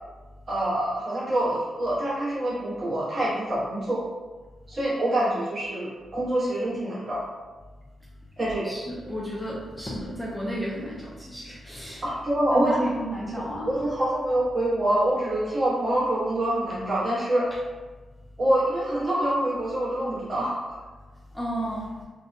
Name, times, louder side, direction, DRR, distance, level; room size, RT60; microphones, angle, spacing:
voice 1, 0.5-4.0 4.7-7.2 8.4-8.7 12.0-12.9 13.7-17.4 18.4-20.8, right 1 dB, 40° right, -6 dB, 0.9 m, -25 dB
voice 2, 8.7-12.0 12.5-13.7 21.3-21.9, equal, 5° left, -5 dB, 0.4 m, -32 dB
2.6 x 2.1 x 2.5 m, 1.3 s
cardioid pair, 105°, 0 cm